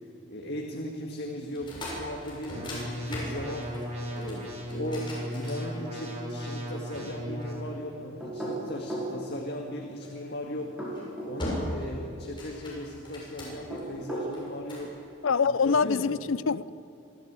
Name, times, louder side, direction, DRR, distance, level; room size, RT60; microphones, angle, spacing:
voice 1, 0.3-3.7 4.1-14.9 15.4-16.1, left 1 dB, 50° left, 1.9 m, -37 dB
sound 1, 1.5-6.2 6.9-8.2 10.0-10.3 10.8-11.0 11.4-11.9 12.2-13.8 14.3-14.9, left 1 dB, 25° left, 7.5 m, -39 dB
sound 2, 2.5-7.5, equal, 35° right, 5.4 m, -36 dB
sound 3, 8.2-9.1 10.6-11.4 13.5-14.3, right 2 dB, 5° right, 5.7 m, -35 dB
voice 2, 15.2-16.7, left 5 dB, 80° left, 0.6 m, -25 dB
26.5 x 14.5 x 8.9 m
head